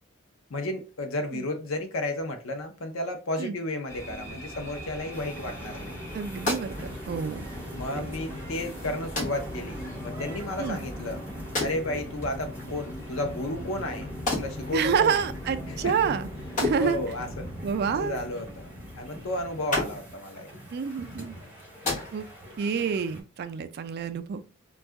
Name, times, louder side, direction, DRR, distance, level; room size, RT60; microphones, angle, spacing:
voice 1, 0.5-5.9 7.7-11.2 11.6-14.1 14.4-15.2 15.7-15.9 16.8-17.5 17.9-20.5, left 1 dB, 80° left, 0.6 m, -33 dB
sound 1, 3.9-20.1, equal, 15° left, 1.5 m, -39 dB
sound 2, 5.1-23.2, right 1 dB, 10° right, 1.1 m, -47 dB
sound 3, 5.9-22.6, left 2 dB, 40° left, 1.1 m, -37 dB
voice 2, 6.1-7.5 8.0-8.1 10.6-10.9 14.7-16.3 16.6-17.0 17.6-18.2 20.7-21.4 22.1-22.2 22.6-24.4, right 6 dB, 50° right, 0.3 m, -28 dB
2.7 x 2.3 x 3.4 m
head